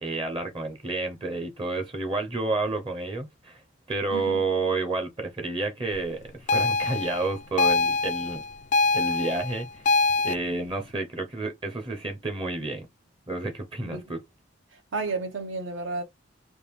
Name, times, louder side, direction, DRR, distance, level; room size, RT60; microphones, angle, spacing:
voice 1, 0.0-3.6 3.9-8.4 8.9-9.9 10.2-12.9 13.3-14.2, right 3 dB, 25° right, 0.7 m, -30 dB
sound 1, 6.5-10.4, left 3 dB, 40° left, 0.3 m, -24 dB
voice 2, 14.7-16.0, right 3 dB, 75° right, 1.0 m, -32 dB
3.3 x 2.5 x 3.5 m
head